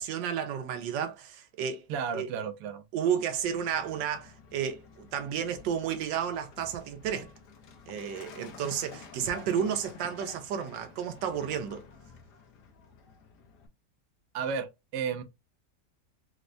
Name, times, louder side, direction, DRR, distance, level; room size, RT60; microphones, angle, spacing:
voice 1, 0.0-1.9 2.1-2.3 2.9-7.3 7.9-11.8, right 8 dB, 90° right, 1.3 m, -32 dB
voice 2, 1.9-2.8 14.3-15.2, right 6 dB, 70° right, 1.1 m, -33 dB
Truck, 3.4-13.7, left 5 dB, 70° left, 1.3 m, -51 dB
4.3 x 2.1 x 2.5 m
omnidirectional pair, 2.0 m